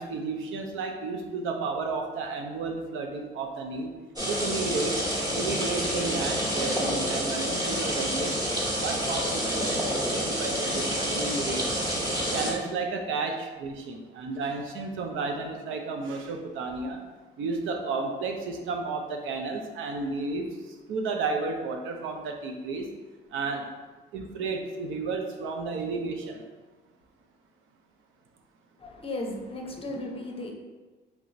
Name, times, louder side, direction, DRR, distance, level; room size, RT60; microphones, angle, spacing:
voice 1, 0.0-3.9 4.3-5.0 5.3-8.4 8.7-11.9 12.3-17.0 17.4-22.9 23.3-23.7 24.1-26.4, right 3 dB, 85° right, 3 dB, 0.5 m, -32 dB
sound 1, 4.2-12.5, equal, 20° right, 1.2 m, -28 dB
voice 2, 28.8-30.5, left 1 dB, 30° left, 1 dB, 0.6 m, -35 dB
3.4 x 2.4 x 4.0 m, 1.3 s
cardioid pair, 90°, 20 cm